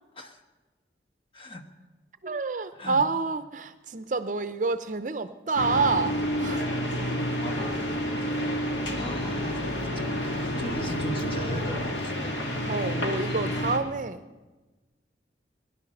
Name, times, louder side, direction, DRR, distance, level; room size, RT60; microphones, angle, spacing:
voice 1, 1.3-1.7 2.7-3.1 7.0-7.8 8.2-8.3 8.9-9.6 9.9-12.4, equal, 30° left, 5 dB, 1.2 m, -38 dB
voice 2, 2.2-6.7 12.7-14.2, right 4 dB, 45° right, 11 dB, 0.6 m, -28 dB
sound 1, 5.5-13.8, equal, 90° left, 2.1 m, -29 dB
sound 2, 6.8-13.1, equal, 15° right, 2.3 m, -51 dB
20.0 x 11.0 x 6.5 m, 1.2 s
head